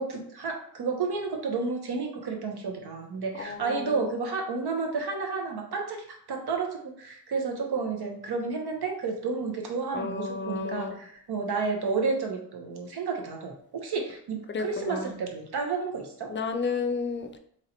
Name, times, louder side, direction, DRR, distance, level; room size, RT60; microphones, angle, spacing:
voice 1, 0.0-16.3, right 4 dB, 75° right, 2 dB, 0.8 m, -31 dB
voice 2, 3.3-4.1 9.9-11.0 14.5-15.2 16.3-17.4, left 4 dB, 30° left, 6 dB, 0.4 m, -32 dB
3.1 x 2.8 x 3.9 m, 0.64 s
wide cardioid pair, 145°, 39 cm